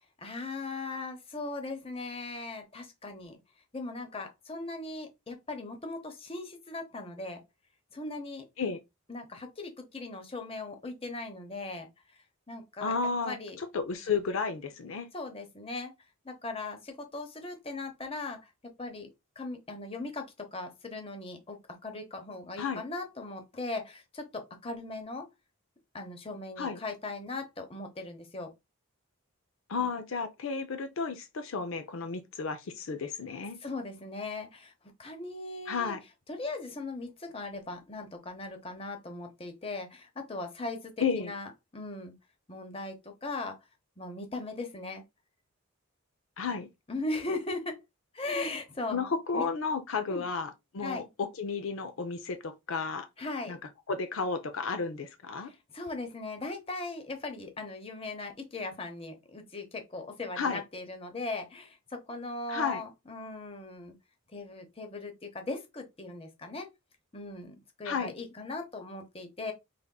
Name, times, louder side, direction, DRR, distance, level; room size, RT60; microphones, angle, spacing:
voice 1, 0.2-3.4 3.7-7.4 7.9-8.4 9.1-12.2 12.5-12.9 13.2-13.6 15.1-15.9 16.2-18.5 18.8-19.1 19.4-25.3 25.9-28.5 33.6-34.7 35.0-36.0 36.3-42.1 42.5-43.6 44.0-45.0 46.9-47.8 48.1-49.4 50.1-50.3 50.8-51.1 53.2-53.6 55.4-63.9 64.3-66.7 67.1-69.5, left 2 dB, 25° left, 0.8 m, -39 dB
voice 2, 12.8-15.1 22.6-22.8 26.6-26.8 29.7-33.6 35.7-36.0 41.0-41.3 46.4-46.7 48.9-53.1 53.5-53.6 53.9-55.5 60.4-60.6 62.5-62.8 67.8-68.1, left 5 dB, 65° left, 0.5 m, -32 dB
5.1 x 3.5 x 2.3 m
head